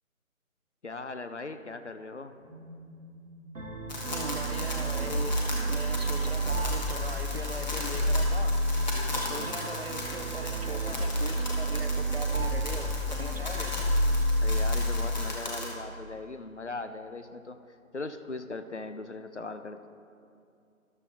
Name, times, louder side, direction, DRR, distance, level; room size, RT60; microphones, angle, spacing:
voice 1, 0.8-2.4 9.1-9.5 14.4-17.6 17.9-19.9, left 3 dB, 55° left, 9 dB, 0.5 m, -39 dB
sound 1, 2.4-9.1, equal, 15° right, 0.9 m, -50 dB
sound 2, 3.5-15.3, equal, 65° right, 1.3 m, -29 dB
sound 3, 3.9-15.7, left 1 dB, 30° left, 1.5 m, -38 dB
voice 2, 4.1-8.5 9.1-13.8, right 2 dB, 45° right, 5 dB, 0.7 m, -40 dB
13.5 x 11.5 x 2.6 m, 2.6 s
figure-of-eight pair, 160°, 43 cm